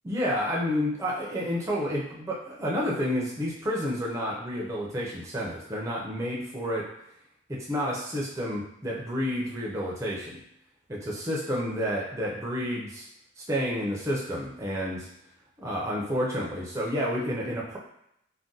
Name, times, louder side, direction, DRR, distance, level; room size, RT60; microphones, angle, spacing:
voice 1, 0.0-6.9 7.5-10.4 10.9-13.1 13.4-15.1 15.6-17.8, equal, 15° right, -4 dB, 0.5 m, -30 dB
2.5 x 2.2 x 3.8 m, 0.76 s
head